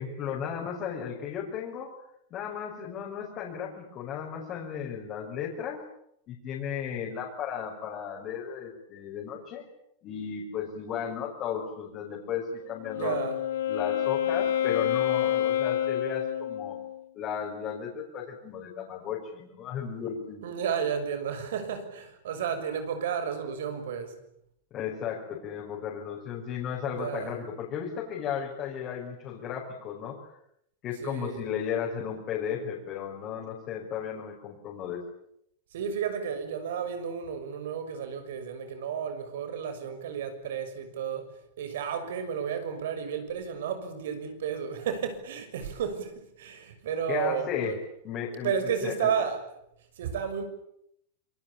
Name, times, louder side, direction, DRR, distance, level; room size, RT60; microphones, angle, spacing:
voice 1, 0.0-1.9 2.3-5.8 6.3-9.7 10.0-13.2 13.7-16.8 17.1-20.4 24.7-30.2 30.8-35.0 47.1-47.7 48.0-48.5 48.8-49.1, left 8 dB, 30° left, 5.8 m, -35 dB
Wind instrument woodwind instrument, 12.7-17.0, left 10 dB, 80° left, 2.7 m, -28 dB
voice 2, 12.9-13.4 20.4-24.2 26.9-27.4 31.0-31.4 35.7-41.3 41.6-47.7 48.4-49.4 50.0-50.4, right 7 dB, 75° right, 6.4 m, -32 dB
27.0 x 22.5 x 8.9 m
supercardioid pair, 160°, 0 cm